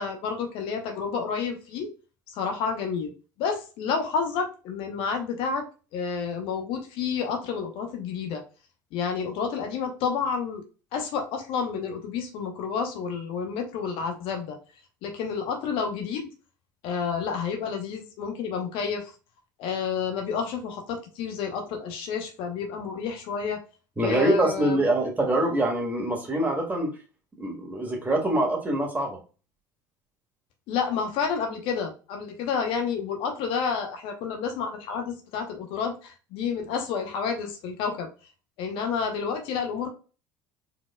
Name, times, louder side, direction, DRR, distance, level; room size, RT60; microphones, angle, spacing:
voice 1, 0.0-1.9 2.3-3.1 3.4-5.7 5.9-8.4 8.9-10.6 10.9-14.6 15.0-16.3 16.8-19.1 19.6-23.6 24.0-24.8 30.7-38.1 38.6-39.9, left 6 dB, 60° left, 4 dB, 1.0 m, -30 dB
voice 2, 24.0-26.9 27.4-29.2, right 1 dB, 15° right, 1 dB, 1.9 m, -24 dB
4.7 x 3.8 x 2.3 m, 0.35 s
hypercardioid pair, 70°, 10 cm